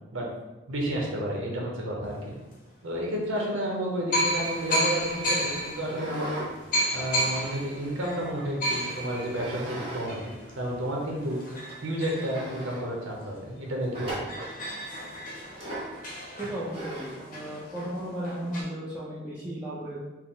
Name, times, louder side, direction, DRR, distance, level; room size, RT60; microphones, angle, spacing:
voice 1, 0.7-2.3 2.8-6.4 6.9-10.2 10.6-11.4 11.8-14.3, equal, 80° right, -1 dB, 0.9 m, -31 dB
sound 1, 2.4-2.5 3.4-3.5 4.1-13.3 13.7-13.8 13.9-18.6, equal, 40° left, 0.7 m, -33 dB
sound 2, 5.8-6.5 6.9-8.3 9.3-10.1 10.4-10.5 11.2-11.3 11.7-11.8 12.1-12.8 13.9-14.5 15.5-16.0 16.7-17.3, right 1 dB, 25° right, 1.1 m, -38 dB
voice 2, 16.4-20.0, right 1 dB, 5° right, -11 dB, 0.6 m, -35 dB
4.6 x 2.1 x 3.7 m, 1.1 s
head